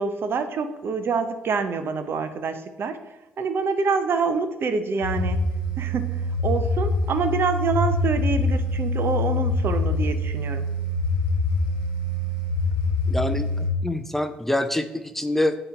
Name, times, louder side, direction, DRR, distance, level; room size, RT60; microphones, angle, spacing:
voice 1, 0.0-3.0 3.4-5.4 5.8-10.6, right 5 dB, 50° right, 10 dB, 0.6 m, -26 dB
sound 1, 5.0-13.7, left 2 dB, 85° left, 0.8 m, -25 dB
Bowed string instrument, 7.7-10.1, right 1 dB, 40° left, 0.8 m, -33 dB
voice 2, 13.1-15.6, left 1 dB, 5° left, 9 dB, 0.5 m, -26 dB
8.7 x 3.0 x 4.4 m, 1.0 s
hypercardioid pair, 50°, 5 cm